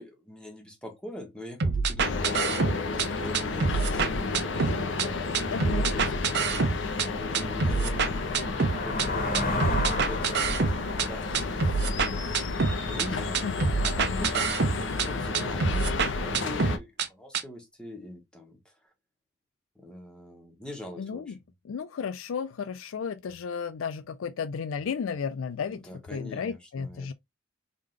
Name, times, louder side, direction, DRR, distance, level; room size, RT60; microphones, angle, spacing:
voice 1, 0.0-8.2 8.8-12.6 12.9-18.9 19.7-21.5 25.7-27.1, left 1 dB, 5° left, 1.4 m, -43 dB
sound 1, 1.6-3.1 3.3-5.1 5.3-7.1 7.3-9.1 9.3-11.1 11.3-13.1 13.3-15.1 15.3-17.1 17.3-17.4, right 4 dB, 55° right, 0.6 m, -26 dB
sound 2, 2.0-16.8, left 3 dB, 65° left, 0.8 m, -32 dB
voice 2, 5.5-5.9 13.4-13.7 21.0-21.3 21.7-25.8 26.1-27.1, left 6 dB, 80° left, 0.4 m, -33 dB
sound 3, 6.9-12.9, left 2 dB, 45° left, 1.4 m, -34 dB
3.7 x 3.3 x 3.2 m
head